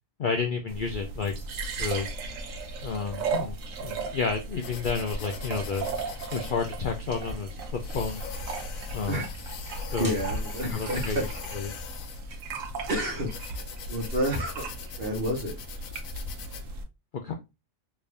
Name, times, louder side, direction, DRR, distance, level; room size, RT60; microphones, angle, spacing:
voice 1, 0.2-1.3 1.8-2.1 2.8-5.9 6.3-8.2 8.9-9.3 9.9-10.1 10.7-11.3 11.5-11.7 17.2-17.3, left 5 dB, 60° left, 4 dB, 0.5 m, -31 dB
sound 1, 0.7-16.8, right 3 dB, 80° right, 1.1 m, -36 dB
sound 2, 4.6-16.6, left 7 dB, 90° left, 1.0 m, -43 dB
sound 3, 6.4-14.9, right 1 dB, 15° right, 1.1 m, -51 dB
voice 2, 10.0-11.2 12.9-13.3 13.9-15.6, equal, 50° right, 1 dB, 1.2 m, -29 dB
3.3 x 2.6 x 3.3 m, 0.24 s
omnidirectional pair, 1.4 m